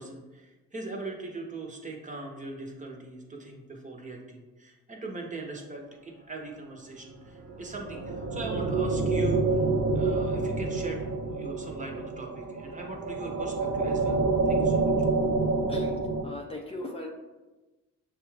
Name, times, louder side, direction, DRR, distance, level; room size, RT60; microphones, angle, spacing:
voice 1, 0.0-9.6 9.9-15.1, right 2 dB, 25° right, 1 dB, 0.9 m, -40 dB
sound 1, 7.4-16.2, right 3 dB, 65° right, 0.8 m, -28 dB
voice 2, 16.2-17.1, left 2 dB, 20° left, -1 dB, 0.5 m, -38 dB
6.5 x 2.4 x 3.2 m, 1.1 s
cardioid pair, 90°, 30 cm